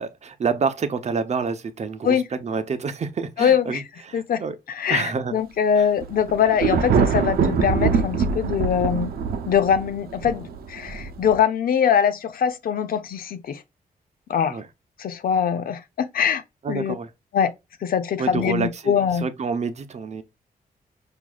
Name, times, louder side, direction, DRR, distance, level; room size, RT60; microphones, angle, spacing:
voice 1, 0.0-4.6 4.9-5.3 5.7-5.9 14.5-14.7 15.5-15.7 16.6-17.1 18.2-20.2, right 5 dB, 45° right, 0.7 m, -28 dB
voice 2, 3.4-3.8 4.1-4.4 4.8-9.1 9.5-13.6 14.3-14.6 15.0-16.4 16.7-16.9 17.3-17.5 17.8-19.3, left 8 dB, 70° left, 0.6 m, -22 dB
Thunder, 6.0-11.4, right 6 dB, 80° right, 0.7 m, -23 dB
6.0 x 2.6 x 2.3 m
cardioid pair, 105°, 16 cm